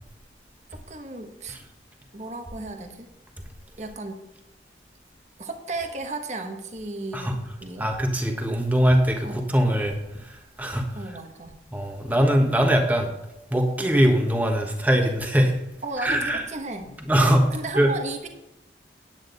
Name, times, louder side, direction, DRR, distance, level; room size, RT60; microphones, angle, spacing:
voice 1, 0.7-1.6 2.1-3.1 3.8-4.2 5.4-7.9 9.2-9.5 10.9-11.5 15.8-16.9 17.5-18.3, right 2 dB, 40° right, 5 dB, 1.1 m, -34 dB
voice 2, 7.8-10.0 10.2-10.9 11.7-13.1 13.5-15.5 16.0-16.4 17.1-17.5 17.8-17.9, equal, 10° right, 2 dB, 1.3 m, -21 dB
9.7 x 9.0 x 4.0 m, 0.92 s
head